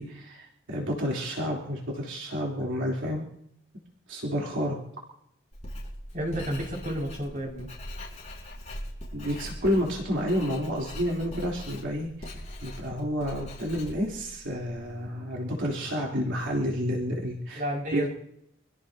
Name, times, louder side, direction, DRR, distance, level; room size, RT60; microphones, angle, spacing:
voice 1, 0.0-3.2 4.1-4.8 9.1-12.3 12.6-17.6 17.9-18.1, equal, 80° right, -3 dB, 3.5 m, -30 dB
Writing, 5.5-14.9, left 1 dB, 35° left, 6.0 m, -41 dB
voice 2, 6.1-7.7 17.5-18.1, equal, 45° right, -1 dB, 6.2 m, -31 dB
26.5 x 17.0 x 2.9 m, 0.73 s
head